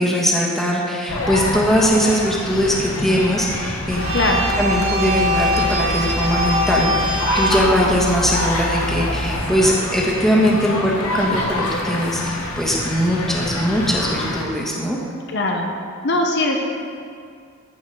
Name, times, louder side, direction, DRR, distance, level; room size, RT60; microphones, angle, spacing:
voice 1, 0.0-4.1 4.6-15.0, equal, ahead, -4 dB, 1.2 m, -20 dB
sound 1, 1.1-14.4, left 1 dB, 75° left, 1.3 m, -26 dB
sound 2, 3.9-9.3, equal, 80° right, 1.5 m, -23 dB
voice 2, 4.1-4.5 15.3-15.7 16.0-16.6, left 2 dB, 50° left, 2 dB, 0.8 m, -20 dB
14.0 x 4.8 x 5.4 m, 2.3 s
head